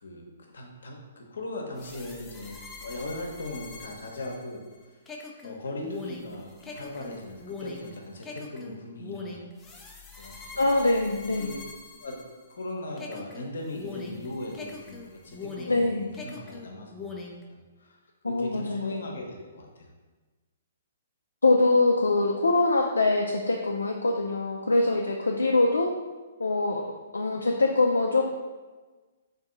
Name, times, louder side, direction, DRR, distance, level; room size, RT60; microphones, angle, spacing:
voice 1, 0.0-4.6 5.4-9.4 10.2-10.7 11.4-11.6 12.0-12.2 12.5-17.2 17.5-18.0 18.2-19.9, left 2 dB, 70° left, 1 dB, 0.8 m, -38 dB
sound 1, 1.8-12.6 13.0-15.8 16.1-17.4, left 4 dB, 15° left, 0.4 m, -42 dB
voice 2, 10.6-11.5 15.7-16.1 18.2-18.9 21.4-25.9 26.4-26.8 27.1-28.2, left 2 dB, 85° left, 1 dB, 0.3 m, -23 dB
3.6 x 2.7 x 3.8 m, 1.3 s
figure-of-eight pair, 125°, 0 cm